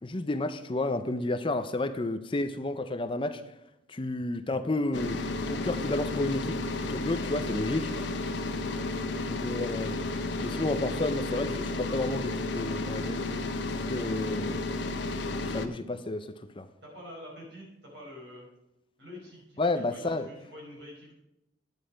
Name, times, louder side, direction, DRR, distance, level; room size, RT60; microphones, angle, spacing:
voice 1, 0.0-3.4 3.9-5.2 5.5-6.6 6.9-7.9 9.3-10.0 10.4-13.2 13.9-14.5 15.5-16.3 16.6-16.7 19.6-20.3, left 2 dB, 25° left, 10 dB, 0.5 m, -31 dB
sound 1, 4.9-15.7, left 2 dB, 70° left, 1.0 m, -32 dB
voice 2, 13.9-14.3 16.8-18.5 19.0-21.1, equal, 60° right, -2 dB, 5.0 m, -47 dB
10.5 x 9.9 x 5.1 m, 0.87 s
head